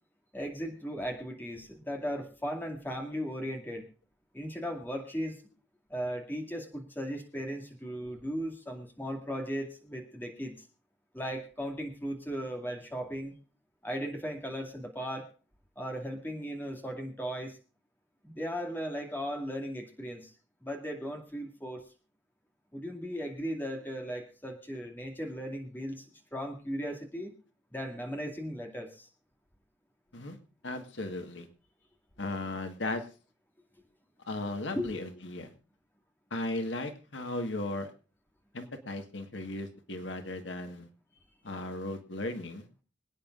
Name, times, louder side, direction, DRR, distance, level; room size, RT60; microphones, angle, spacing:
voice 1, 0.3-3.9 4.3-5.4 5.9-10.6 11.1-13.3 13.8-15.3 15.8-17.6 18.2-20.3 20.6-21.8 22.7-26.0 26.3-27.3 27.7-29.1 34.8-35.0, equal, 10° left, 2 dB, 2.3 m, -37 dB
voice 2, 30.6-31.5 32.2-33.0 34.3-35.5 36.3-37.9 38.5-40.9 41.4-42.8, left 2 dB, 80° left, 6 dB, 1.6 m, -36 dB
26.0 x 9.2 x 2.5 m, 0.36 s
head